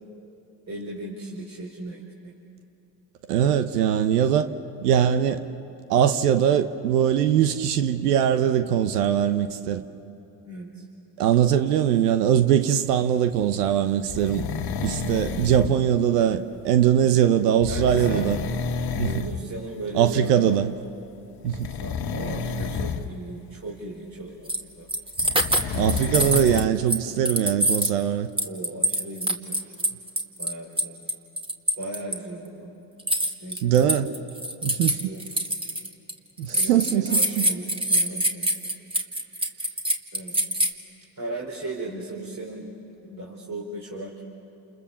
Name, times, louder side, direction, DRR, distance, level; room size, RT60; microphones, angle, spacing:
voice 1, 0.7-2.3 10.4-10.8 15.2-15.8 17.7-18.3 19.0-20.6 21.8-24.5 24.8-24.9 28.4-29.7 30.4-31.0 31.8-32.8 33.4-33.7 35.0-35.2 36.5-38.5 39.5-39.6 40.1-40.4 41.2-42.7 43.0-44.2, right 1 dB, 35° right, -3 dB, 4.4 m, -36 dB
voice 2, 3.3-4.5 4.8-5.4 5.9-9.8 11.2-14.5 14.8-18.4 19.0-19.1 19.9-20.7 21.4-21.7 25.7-28.3 33.6-34.1 34.6-35.1 36.4-37.4, right 10 dB, 85° right, 11 dB, 1.0 m, -21 dB
sound 1, 14.1-15.7 17.6-19.4 19.7-20.0 21.4-23.1 25.2-26.7, left 5 dB, 50° left, 1.6 m, -30 dB
sound 2, 24.5-24.6 24.9-26.6 26.9-28.0 28.4-32.2 33.0-36.1 36.5-40.7, right 1 dB, 10° right, 2.1 m, -25 dB
29.0 x 28.5 x 7.1 m, 2.9 s
hypercardioid pair, 65°, 46 cm